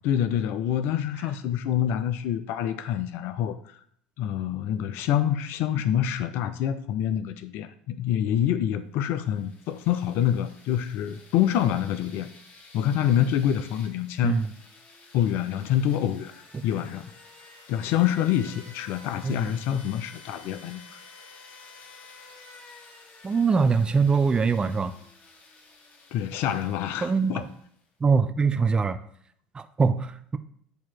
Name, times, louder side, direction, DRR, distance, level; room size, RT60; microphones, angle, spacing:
voice 1, 0.0-3.8 4.2-12.3 12.7-14.4 15.1-17.0 17.7-21.0 26.1-27.4, left 10 dB, 60° left, 11 dB, 0.4 m, -26 dB
sound 1, 9.1-27.8, left 3 dB, 40° left, 1.4 m, -51 dB
voice 2, 19.2-19.5 23.2-25.0 27.0-27.5 28.0-29.0 29.5-30.4, right 5 dB, 20° right, 10 dB, 0.4 m, -23 dB
8.1 x 2.9 x 4.4 m, 0.64 s
hypercardioid pair, 75°, 4 cm